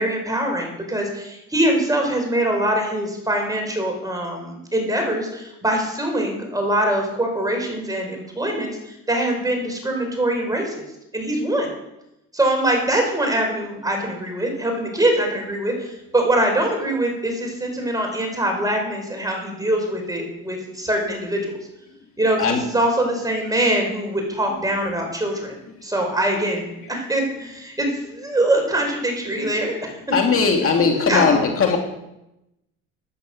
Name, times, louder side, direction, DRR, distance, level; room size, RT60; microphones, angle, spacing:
voice 1, 0.0-10.8 11.1-11.7 12.3-21.6 22.2-25.5 25.8-30.0 30.5-31.5, right 1 dB, 10° right, 2 dB, 5.5 m, -23 dB
voice 2, 30.1-31.8, left 5 dB, 45° left, 2 dB, 2.3 m, -19 dB
13.5 x 10.5 x 7.6 m, 0.88 s
cardioid pair, 100°, 31 cm